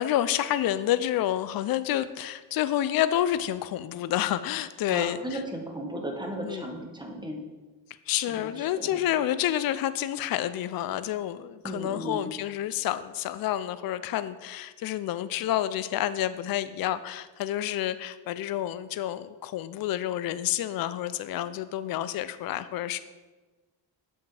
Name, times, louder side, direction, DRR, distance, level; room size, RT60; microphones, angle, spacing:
voice 1, 0.0-5.2 6.4-6.7 8.1-23.0, left 12 dB, 55° left, 13 dB, 0.4 m, -29 dB
voice 2, 4.9-7.4 8.3-9.0 11.6-12.3, right 1 dB, 10° right, 2 dB, 1.2 m, -35 dB
7.8 x 5.8 x 3.3 m, 1.2 s
cardioid pair, 90°, 44 cm